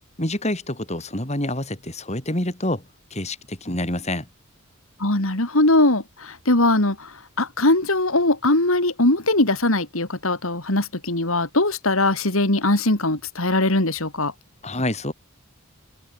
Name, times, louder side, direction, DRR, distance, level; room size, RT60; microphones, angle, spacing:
voice 1, 0.2-2.8 3.1-4.3 14.6-15.1, left 1 dB, 30° left, 6.0 m, -27 dB
voice 2, 5.0-14.3, left 2 dB, 70° left, 3.6 m, -21 dB
head